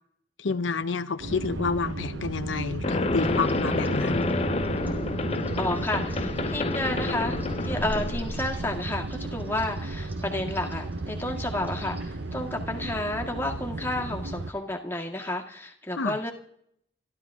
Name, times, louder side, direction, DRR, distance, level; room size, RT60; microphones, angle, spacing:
voice 1, 0.4-4.3 16.0-16.2, left 4 dB, 75° left, 0.7 m, -29 dB
sound 1, 1.2-14.5, right 2 dB, 75° right, 0.9 m, -34 dB
sound 2, 2.8-8.8, left 2 dB, 30° left, 0.9 m, -29 dB
sound 3, 3.2-13.0, equal, 10° right, 3.9 m, -47 dB
voice 2, 5.6-16.3, left 1 dB, 10° left, 1.9 m, -31 dB
29.5 x 12.0 x 3.6 m
head